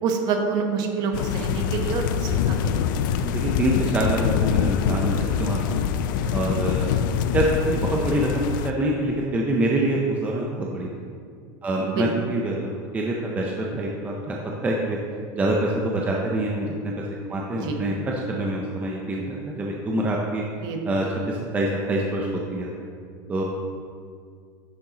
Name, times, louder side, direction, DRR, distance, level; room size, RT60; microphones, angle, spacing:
voice 1, 0.0-3.0 6.2-6.4 11.9-12.1 17.5-17.8 20.6-20.8, right 5 dB, 40° right, 3 dB, 1.0 m, -27 dB
sound 1, 1.1-8.7, left 8 dB, 65° left, 0.4 m, -24 dB
voice 2, 3.2-5.8 6.3-6.9 7.3-10.9 11.6-14.4 14.6-15.0 15.3-17.0 17.3-20.4 20.8-22.7 23.3-23.4, right 1 dB, 15° right, -2 dB, 0.6 m, -25 dB
10.0 x 6.5 x 2.9 m, 2.2 s
supercardioid pair, 160°, 11 cm